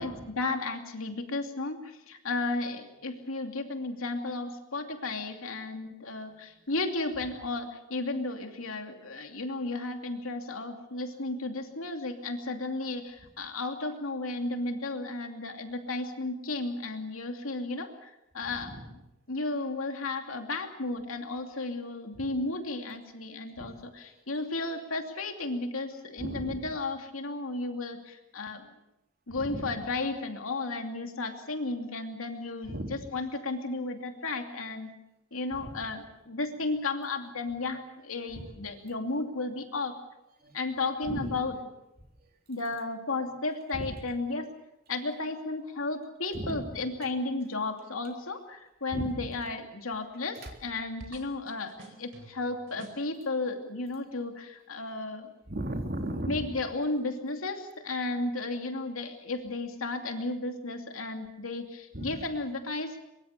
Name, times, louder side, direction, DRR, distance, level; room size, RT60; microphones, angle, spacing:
voice 1, 0.0-18.7 19.3-23.7 24.3-28.6 29.3-32.8 33.1-34.9 35.3-39.9 40.5-41.5 42.5-44.5 44.9-55.3 56.3-63.0, left 2 dB, 90° left, 5 dB, 2.7 m, -34 dB
voice 2, 6.3-6.7 11.0-11.1 18.4-18.9 22.1-22.2 23.6-24.1 26.2-26.7 29.3-29.7 32.6-33.0 35.5-35.8 37.5-37.8 38.3-38.9 40.4-40.6 41.0-41.4 42.2-42.3 43.7-43.9 46.3-46.7 48.9-49.3 50.3-50.5 55.5-56.5 61.9-62.3, right 1 dB, 45° right, 3 dB, 3.4 m, -38 dB
sound 1, 50.4-50.7 51.0-53.1, right 1 dB, 70° right, 4.4 m, -49 dB
23.0 x 23.0 x 6.8 m, 0.91 s
head